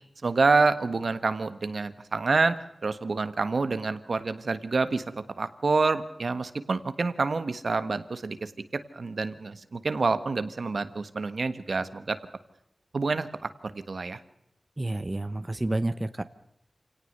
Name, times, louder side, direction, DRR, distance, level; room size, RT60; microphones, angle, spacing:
voice 1, 0.2-8.5 8.9-12.2 12.9-14.2, right 3 dB, 65° right, 11 dB, 1.4 m, -27 dB
voice 2, 14.8-16.2, right 2 dB, 25° right, 11 dB, 1.0 m, -29 dB
27.5 x 18.0 x 6.7 m, 0.78 s
wide cardioid pair, 85°, 0 cm